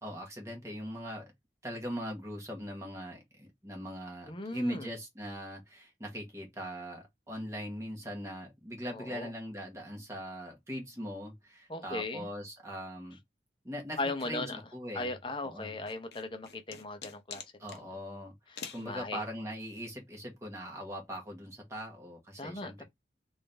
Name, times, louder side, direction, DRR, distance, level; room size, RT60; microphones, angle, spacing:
voice 1, 0.0-1.3 1.6-13.2 13.6-15.1 15.4-15.8 17.6-18.3 18.7-22.8, equal, 15° right, 1.3 m, -41 dB
voice 2, 4.3-4.9 8.9-9.3 11.7-12.3 14.0-14.6 14.9-17.4 18.5-19.2 22.4-22.8, left 2 dB, 30° left, 0.8 m, -37 dB
sound 1, 15.9-17.8 18.6-18.9, left 7 dB, 70° left, 0.8 m, -45 dB
3.6 x 2.6 x 3.4 m
head